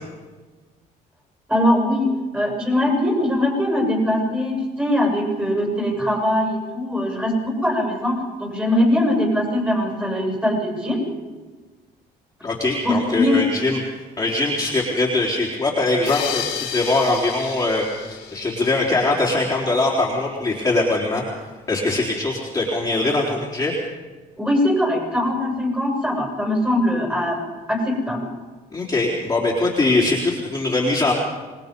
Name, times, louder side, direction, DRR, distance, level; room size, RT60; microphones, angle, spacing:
voice 1, 1.5-11.0 12.8-13.5 24.4-27.4 27.7-28.3, left 1 dB, 10° right, 0 dB, 7.3 m, -21 dB
voice 2, 12.4-13.8 14.2-21.2 21.7-23.7 28.7-31.1, left 2 dB, 20° left, -5 dB, 4.0 m, -22 dB
sound 1, 16.1-19.4, left 9 dB, 70° left, 3.6 m, -32 dB
26.5 x 20.5 x 5.4 m, 1.3 s
cardioid pair, 110°, 17 cm